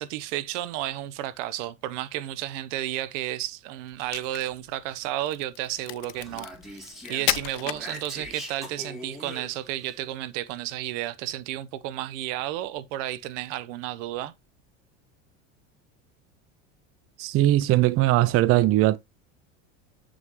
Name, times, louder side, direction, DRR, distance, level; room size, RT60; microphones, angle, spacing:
voice 1, 0.0-14.3, right 14 dB, 70° right, 0.9 m, -32 dB
Crack, 3.9-8.5, left 21 dB, 65° left, 0.6 m, -33 dB
Speech, 6.0-9.9, equal, ahead, 3.6 m, -42 dB
voice 2, 17.2-19.0, right 15 dB, 40° right, 0.5 m, -20 dB
7.1 x 6.3 x 3.0 m
supercardioid pair, 105°, 38 cm